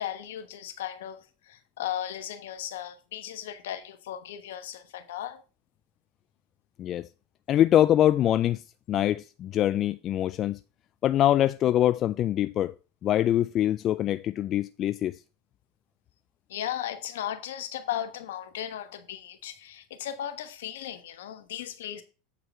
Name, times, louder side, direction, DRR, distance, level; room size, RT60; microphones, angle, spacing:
voice 1, 0.0-5.4 16.5-22.0, left 11 dB, 75° left, 1.2 m, -36 dB
voice 2, 7.5-8.6 8.9-10.6 11.0-12.7 13.0-15.2, left 12 dB, 40° left, 0.3 m, -24 dB
8.4 x 4.8 x 4.4 m
hypercardioid pair, 100°, 0 cm